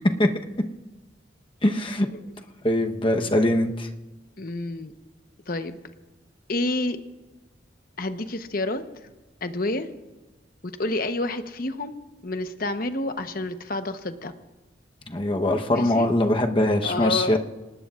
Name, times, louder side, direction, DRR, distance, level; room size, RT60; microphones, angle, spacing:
voice 1, 1.6-2.1 2.6-3.9 15.1-17.4, left 1 dB, 30° left, 4 dB, 1.0 m, -22 dB
voice 2, 4.4-4.9 5.5-5.8 6.5-7.0 8.0-8.8 9.4-9.9 10.6-12.0 12.2-14.3 15.7-16.1 16.8-17.4, left 2 dB, 50° left, 8 dB, 1.0 m, -29 dB
26.0 x 19.5 x 2.5 m, 1.1 s
head